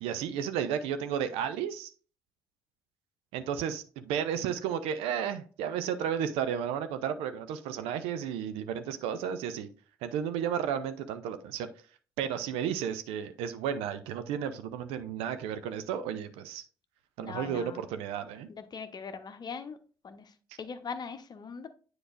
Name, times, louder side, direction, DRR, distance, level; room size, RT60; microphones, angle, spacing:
voice 1, 0.0-1.9 3.3-9.7 10.0-11.7 12.2-16.6 17.2-18.5, right 8 dB, 65° right, 0.6 m, -33 dB
voice 2, 17.2-17.8 18.5-19.8 20.0-21.7, left 5 dB, 40° left, 0.9 m, -41 dB
9.7 x 4.7 x 2.5 m
figure-of-eight pair, 40°, 11 cm